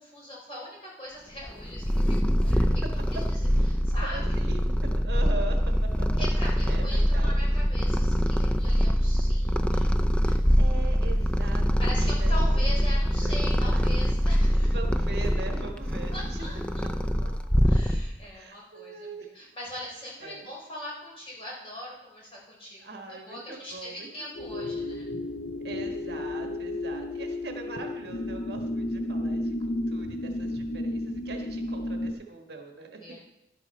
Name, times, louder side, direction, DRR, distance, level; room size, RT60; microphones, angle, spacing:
voice 1, 0.0-2.8 3.1-3.4 3.7-4.4 6.2-9.9 10.2-10.4 11.8-14.7 16.1-22.8 23.1-25.1 33.0-33.2, left 1 dB, 30° left, -4 dB, 3.9 m, -41 dB
Purr, 1.5-18.3, equal, 5° left, 0.4 m, -24 dB
voice 2, 3.6-5.6 6.0-6.2 6.7-7.4 10.6-11.6 12.0-12.9 13.2-13.4 13.7-13.9 14.7-16.5 17.2-17.3 18.3-19.3 20.2-20.5 22.8-24.8 25.6-33.0, right 3 dB, 65° right, 3 dB, 1.4 m, -41 dB
sound 1, 24.3-32.1, left 1 dB, 70° left, 0.7 m, -32 dB
11.0 x 11.0 x 4.3 m, 0.89 s
head